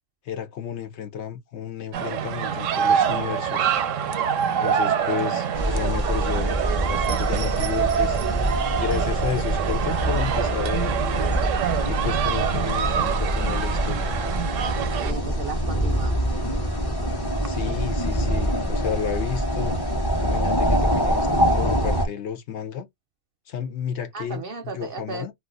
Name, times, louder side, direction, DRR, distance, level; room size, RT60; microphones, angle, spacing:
voice 1, 0.2-3.7 4.6-8.2 8.8-11.3 11.8-14.1 17.4-19.7 20.2-22.9 23.5-25.3, left 8 dB, 65° left, 0.9 m, -32 dB
sound 1, 1.9-15.1, right 8 dB, 85° right, 1.0 m, -25 dB
sound 2, 5.5-22.1, equal, 25° left, 0.7 m, -25 dB
voice 2, 14.6-16.2 24.1-25.3, right 4 dB, 55° right, 0.7 m, -35 dB
2.4 x 2.3 x 3.7 m
omnidirectional pair, 1.3 m